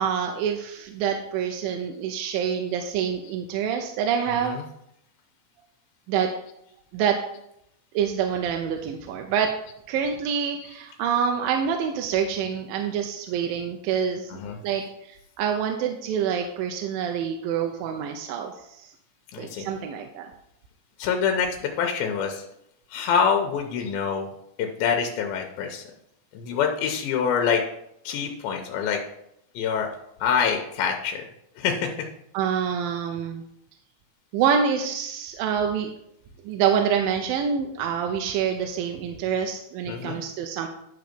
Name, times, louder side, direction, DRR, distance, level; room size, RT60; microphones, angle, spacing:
voice 1, 0.0-4.6 6.1-6.3 6.9-7.2 7.9-9.5 9.9-14.4 14.6-18.9 19.4-20.3 32.3-33.4 34.3-35.9 36.5-40.7, right 7 dB, 85° right, 4 dB, 2.3 m, -26 dB
voice 2, 19.3-19.7 21.0-22.5 22.9-24.3 24.6-25.8 26.3-27.6 28.0-29.0 29.6-29.9 30.2-31.2 31.6-32.1 39.9-40.2, left 7 dB, 85° left, 3 dB, 2.6 m, -25 dB
11.5 x 4.0 x 5.1 m, 0.78 s
omnidirectional pair, 4.1 m